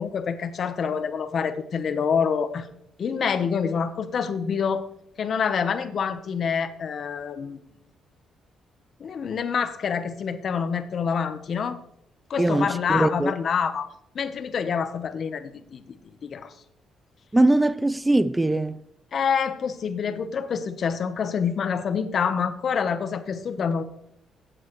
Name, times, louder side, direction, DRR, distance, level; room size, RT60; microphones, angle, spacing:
voice 1, 0.0-2.7 3.0-4.9 5.2-7.6 9.0-11.8 12.3-13.9 14.1-16.0 16.2-16.5 19.1-23.8, left 6 dB, 55° left, 1.0 m, -27 dB
voice 2, 12.4-13.3 17.3-18.8, right 2 dB, 10° right, 0.4 m, -21 dB
14.5 x 8.0 x 3.1 m
cardioid pair, 90°, 0 cm